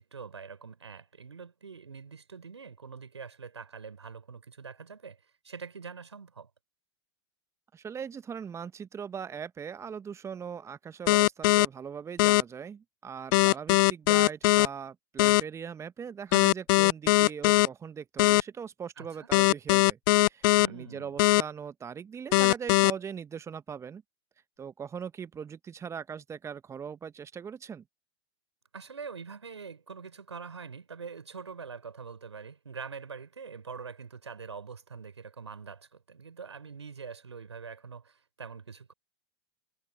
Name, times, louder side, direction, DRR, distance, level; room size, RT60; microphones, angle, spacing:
voice 1, 0.0-5.2 5.4-6.5 19.0-19.3 20.6-21.2 28.7-38.9, right 5 dB, 85° right, 5.5 m, -44 dB
voice 2, 7.7-24.0 24.6-27.8, right 7 dB, 20° right, 1.2 m, -40 dB
sound 1, 11.1-11.6 12.2-12.4 13.3-14.7 15.2-15.4 16.3-17.7 18.2-18.4 19.3-20.7 21.2-21.4 22.3-22.9, left 24 dB, 50° left, 0.4 m, -20 dB
figure-of-eight pair, 95°, 14 cm